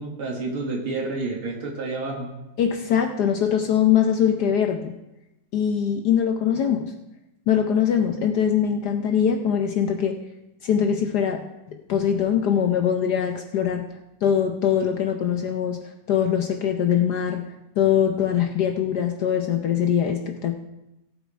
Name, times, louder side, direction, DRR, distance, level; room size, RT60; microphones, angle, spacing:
voice 1, 0.0-2.3, right 3 dB, 85° right, -2 dB, 2.9 m, -29 dB
voice 2, 2.6-5.0 5.5-6.9 7.5-10.2 10.6-13.9 14.2-15.8 16.1-17.5 17.8-20.6, left 8 dB, 65° left, 5 dB, 1.0 m, -22 dB
18.5 x 8.4 x 3.4 m, 0.94 s
omnidirectional pair, 2.3 m